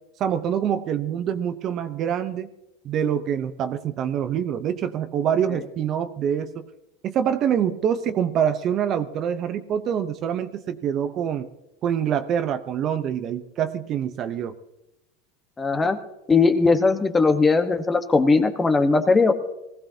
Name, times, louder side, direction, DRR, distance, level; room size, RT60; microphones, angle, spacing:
voice 1, 0.2-2.5 2.8-6.7 7.0-11.5 11.8-14.5, right 9 dB, 40° right, 9 dB, 0.8 m, -25 dB
voice 2, 15.6-16.0 16.3-19.3, left 4 dB, 15° left, 7 dB, 1.2 m, -19 dB
20.0 x 15.0 x 2.8 m, 0.92 s
supercardioid pair, 120°, 0 cm